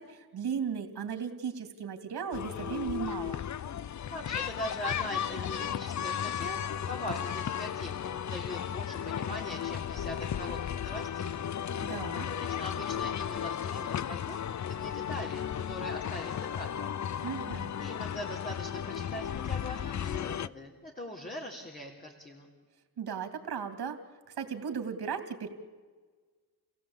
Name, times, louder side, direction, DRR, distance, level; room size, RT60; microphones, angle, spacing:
voice 1, 0.0-3.4 11.8-12.3 17.2-17.7 23.0-24.0 24.4-25.5, right 7 dB, 65° right, 7 dB, 2.6 m, -36 dB
sound 1, 2.3-20.5, left 9 dB, 45° left, 0.6 m, -35 dB
voice 2, 4.1-6.6 6.9-11.4 12.3-16.9 17.8-22.5, left 1 dB, 20° left, -1 dB, 3.6 m, -41 dB
29.0 x 16.5 x 8.7 m, 1.5 s
cardioid pair, 85°, 41 cm